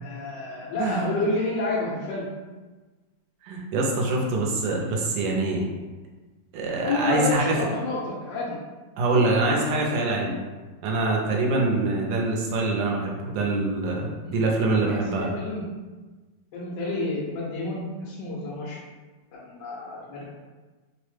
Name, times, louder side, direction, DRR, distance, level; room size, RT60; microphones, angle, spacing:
voice 1, 0.0-2.2 6.8-8.6 9.1-9.3 14.2-15.6 16.5-18.8 19.3-20.3, left 2 dB, 80° left, -5 dB, 1.3 m, -30 dB
voice 2, 0.8-1.2 3.4-5.6 6.5-7.7 9.0-10.4 10.8-15.3, right 2 dB, 85° right, -1 dB, 1.3 m, -24 dB
3.4 x 2.0 x 3.1 m, 1.3 s
omnidirectional pair, 2.0 m